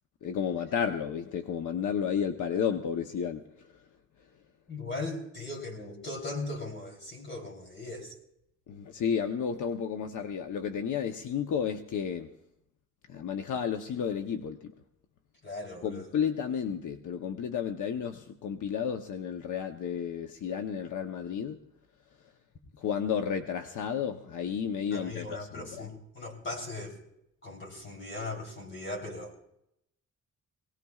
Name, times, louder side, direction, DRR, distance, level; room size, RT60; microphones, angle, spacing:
voice 1, 0.2-3.7 8.7-12.3 13.1-14.7 15.8-21.6 22.8-25.9, left 7 dB, 75° left, 5 dB, 0.9 m, -32 dB
voice 2, 4.7-8.1 15.4-16.1 24.9-27.0 27.4-29.3, left 2 dB, 35° left, 2 dB, 3.5 m, -38 dB
23.0 x 18.0 x 2.4 m, 0.79 s
wide cardioid pair, 170°, 31 cm